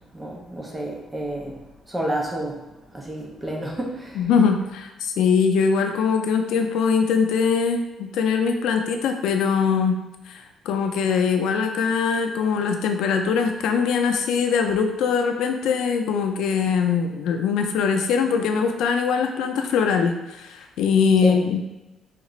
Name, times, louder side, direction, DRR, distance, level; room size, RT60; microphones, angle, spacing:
voice 1, 0.1-1.6 1.9-2.6 2.9-4.2 21.2-21.4, right 1 dB, 10° right, -1 dB, 0.5 m, -29 dB
voice 2, 4.1-10.0 10.3-21.6, left 6 dB, 85° left, 4 dB, 0.4 m, -22 dB
3.6 x 2.4 x 3.0 m, 1.0 s
cardioid pair, 170°, 0 cm